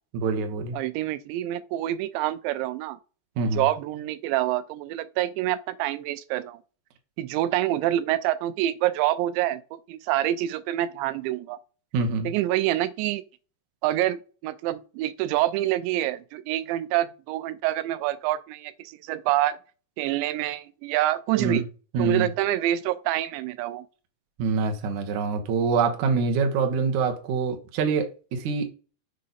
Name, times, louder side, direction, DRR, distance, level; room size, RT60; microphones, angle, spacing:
voice 1, 0.1-0.8 3.4-3.7 11.9-12.3 21.4-21.6 21.9-22.3 24.4-28.7, right 4 dB, 70° right, 1.9 m, -25 dB
voice 2, 0.7-3.0 3.5-6.6 7.2-9.6 9.9-11.6 12.2-13.2 13.8-19.6 20.0-21.7 22.0-23.9, right 14 dB, 85° right, 2.8 m, -26 dB
6.5 x 4.9 x 4.1 m
omnidirectional pair, 5.0 m